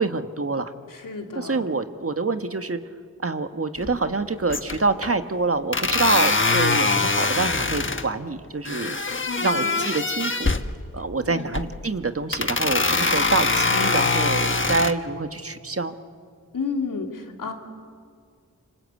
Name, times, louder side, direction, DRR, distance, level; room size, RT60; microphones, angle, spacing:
voice 1, 0.0-0.7 1.3-2.8 3.2-9.1 9.4-10.5 10.9-15.9, right 3 dB, 45° right, 8 dB, 1.6 m, -26 dB
voice 2, 0.9-1.6 9.3-9.8 11.2-11.5 16.5-17.5, left 4 dB, 85° left, 3 dB, 2.9 m, -31 dB
sound 1, 3.8-4.2 4.5-5.1 5.7-8.1 8.6-10.7 11.4-11.8 12.3-14.9, left 3 dB, 40° left, 1.4 m, -23 dB
26.5 x 25.0 x 8.4 m, 2.1 s
cardioid pair, 50°, 32 cm